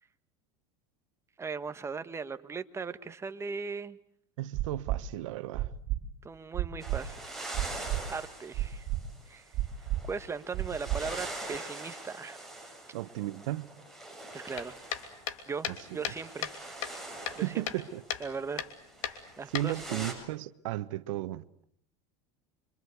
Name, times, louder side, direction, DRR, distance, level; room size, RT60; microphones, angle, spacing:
voice 1, 1.4-4.0 6.2-7.2 7.7-8.9 9.3-9.5 10.0-12.4 14.3-14.8 15.5-16.5 17.3-17.6 18.2-18.6 19.0-20.1, right 5 dB, 15° right, 1.4 m, -38 dB
voice 2, 4.4-5.7 12.9-13.7 15.7-16.1 17.2-18.0 19.5-21.4, right 15 dB, 80° right, 1.3 m, -35 dB
sound 1, 4.5-5.0 5.5-6.0 6.5-7.0 7.5-8.0 8.5-9.0 9.5-10.0 10.5-11.0 11.5-11.6, right 16 dB, 50° right, 3.8 m, -30 dB
sound 2, 6.8-20.1, right 2 dB, ahead, 7.5 m, -44 dB
sound 3, 14.5-16.6 16.8-17.8 18.1-18.3 18.6-18.7 19.0-20.1, left 10 dB, 90° left, 3.0 m, -36 dB
27.0 x 25.0 x 8.4 m
supercardioid pair, 125°, 16 cm